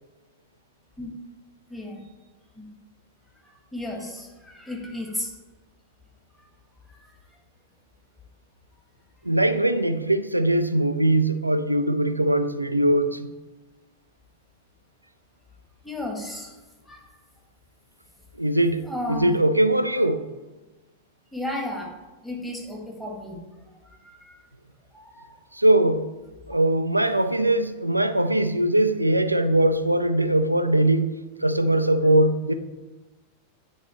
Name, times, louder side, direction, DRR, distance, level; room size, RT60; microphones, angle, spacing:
voice 1, 3.7-5.3 6.9-7.0 15.8-16.5 16.8-17.1 18.8-19.3 21.3-21.9 22.2-23.4 24.0-24.4 24.9-25.3, left 1 dB, 5° left, 1.7 m, -33 dB
voice 2, 9.2-13.3 18.4-18.8 19.1-20.2 25.6-26.0 26.5-31.1 31.4-32.5, right 1 dB, 85° right, 0.4 m, -21 dB
8.8 x 4.0 x 4.4 m
figure-of-eight pair, 90°, 0 cm